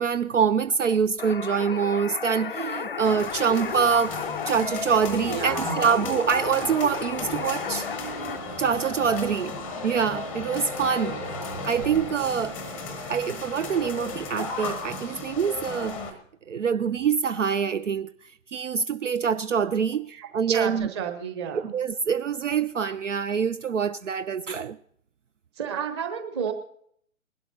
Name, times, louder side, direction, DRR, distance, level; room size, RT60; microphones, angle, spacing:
voice 1, 0.0-7.9 8.6-9.6 9.8-11.2 11.6-12.8 13.1-16.0 16.5-18.1 18.5-20.9 21.5-24.8, right 6 dB, 65° right, 0.5 m, -25 dB
sound 1, 1.2-8.4, left 6 dB, 45° left, 0.4 m, -33 dB
sound 2, 3.0-16.1, left 3 dB, 5° left, 0.7 m, -35 dB
voice 2, 5.3-5.9 20.1-21.7 25.6-26.5, right 7 dB, 20° right, 1.1 m, -31 dB
20.0 x 12.0 x 2.8 m
figure-of-eight pair, 130°, 41 cm